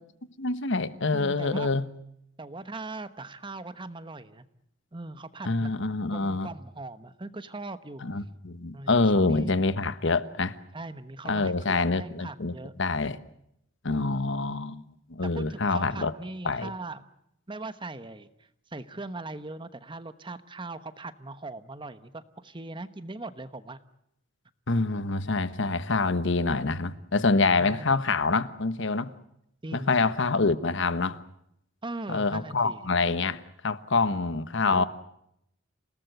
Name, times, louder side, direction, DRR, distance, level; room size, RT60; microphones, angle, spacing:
voice 1, 0.4-1.9 5.5-6.5 8.0-10.6 11.3-12.5 12.8-13.2 13.8-14.8 15.1-16.1 16.4-16.7 24.7-29.1 29.7-31.2 32.1-34.8, left 3 dB, 65° left, 1.2 m, -26 dB
voice 2, 1.1-1.7 2.4-4.4 4.9-5.8 6.1-8.0 8.7-9.6 10.7-12.7 13.9-14.1 15.2-17.1 17.5-18.3 18.7-23.8 27.6-28.0 29.6-30.0 31.8-32.8 34.7-34.8, right 2 dB, 25° right, 1.1 m, -40 dB
28.0 x 18.5 x 7.9 m
head